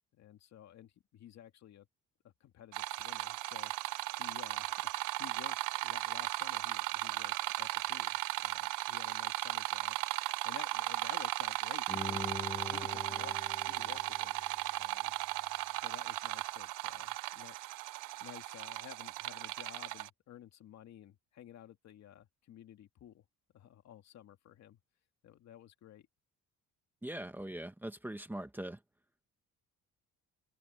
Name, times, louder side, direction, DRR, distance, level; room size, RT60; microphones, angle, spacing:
voice 1, 0.1-1.9 2.2-3.7 4.2-4.9 5.2-5.6 5.8-10.0 10.4-12.3 12.7-13.4 13.7-14.3 14.8-15.1 15.8-17.6 18.2-23.2 23.5-24.8 25.2-26.1, left 11 dB, 60° left, 2.3 m, -53 dB
sound 1, 2.7-20.1, right 19 dB, 90° right, 0.5 m, -36 dB
Bowed string instrument, 11.9-15.0 15.4-15.5, left 4 dB, 15° left, 1.4 m, -44 dB
voice 2, 27.0-28.8, right 1 dB, 5° right, 1.4 m, -41 dB
open air
cardioid pair, 160°, 31 cm